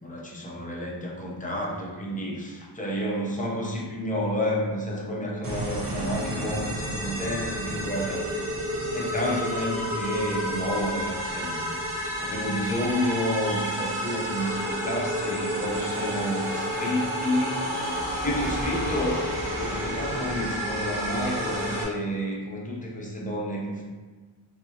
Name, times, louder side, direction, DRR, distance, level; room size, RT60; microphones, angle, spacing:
voice 1, 0.0-8.3 8.9-11.6 11.9-17.7 18.2-23.8, equal, 15° left, -3 dB, 0.6 m, -30 dB
sound 1, 5.4-21.8, equal, 45° right, 0.7 m, -31 dB
Clock, 13.4-19.3, equal, 85° right, 0.7 m, -38 dB
3.6 x 2.0 x 2.8 m, 1.4 s
wide cardioid pair, 85°, 48 cm